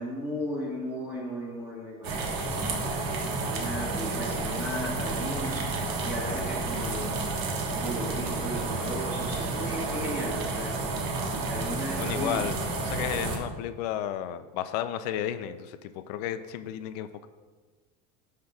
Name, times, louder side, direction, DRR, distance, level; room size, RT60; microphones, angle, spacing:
voice 1, 0.0-3.0 3.5-5.7 6.0-7.3 7.8-12.4, equal, 10° right, -7 dB, 1.5 m, -36 dB
sound 1, 2.0-13.4, right 3 dB, 60° right, 1.3 m, -31 dB
voice 2, 12.0-17.3, left 11 dB, 90° left, 11 dB, 0.5 m, -33 dB
11.5 x 5.8 x 2.3 m, 1.4 s
cardioid pair, 170°, 20 cm